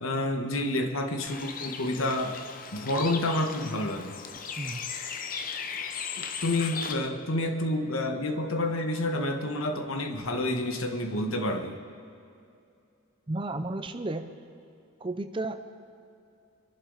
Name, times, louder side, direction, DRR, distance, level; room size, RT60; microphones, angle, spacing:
voice 1, 0.0-2.4 2.7-4.1 6.2-11.8, left 1 dB, 80° left, 5 dB, 1.4 m, -29 dB
Bird, 1.3-6.9, left 6 dB, 40° left, 0.7 m, -37 dB
voice 2, 4.6-4.9 13.3-14.3 15.0-15.7, right 2 dB, 25° right, 9 dB, 0.6 m, -33 dB
24.5 x 11.5 x 4.1 m, 2.5 s
head